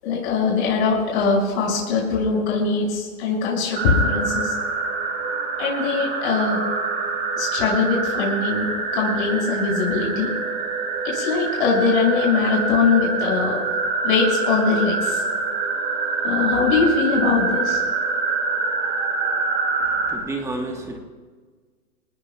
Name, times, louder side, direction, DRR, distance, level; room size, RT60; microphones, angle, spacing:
voice 1, 0.0-4.5 5.6-6.6 7.3-10.3 11.0-13.6 14.0-15.2 16.2-17.8, left 5 dB, 45° left, -3 dB, 6.4 m, -22 dB
sound 1, 3.8-20.2, right 4 dB, 25° right, 2.5 m, -25 dB
voice 2, 20.0-21.0, right 2 dB, 5° right, 2 dB, 1.4 m, -30 dB
28.0 x 19.0 x 2.4 m, 1.5 s
hypercardioid pair, 155°, 45 cm